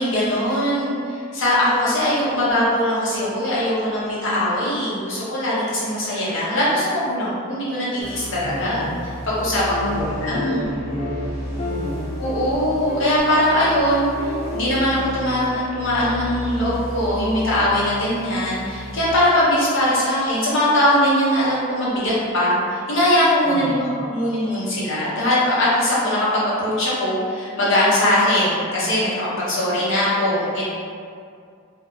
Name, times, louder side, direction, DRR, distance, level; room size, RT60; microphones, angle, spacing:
voice 1, 0.0-8.9 9.3-10.7 12.2-30.6, left 1 dB, 65° left, -8 dB, 0.8 m, -21 dB
sound 1, 8.0-19.1, equal, 10° right, 0.7 m, -33 dB
voice 2, 8.4-8.9 9.9-12.0 23.4-23.8, equal, 65° right, -12 dB, 0.6 m, -31 dB
sound 2, 9.7-10.0 10.3-10.7 11.0-11.3 11.6-12.6 12.9-13.2 13.5-13.8 14.1-14.8, left 2 dB, 30° left, 0.3 m, -31 dB
2.6 x 2.2 x 2.4 m, 2.3 s
head